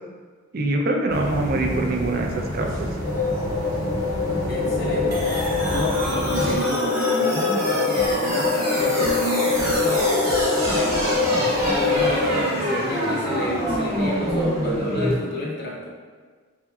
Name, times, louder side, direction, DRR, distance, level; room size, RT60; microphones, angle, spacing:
voice 1, 0.5-2.9, right 2 dB, 45° right, 2 dB, 0.4 m, -24 dB
sound 1, 1.1-6.6, equal, 75° right, 1.0 m, -29 dB
sound 2, 3.0-12.4, left 4 dB, 80° left, 0.8 m, -24 dB
voice 2, 4.5-10.4 10.7-11.4 11.6-15.9, left 1 dB, 50° left, -3 dB, 0.6 m, -31 dB
sound 3, 5.1-15.1, equal, 15° right, 1.1 m, -26 dB
4.3 x 3.6 x 2.3 m, 1.5 s
head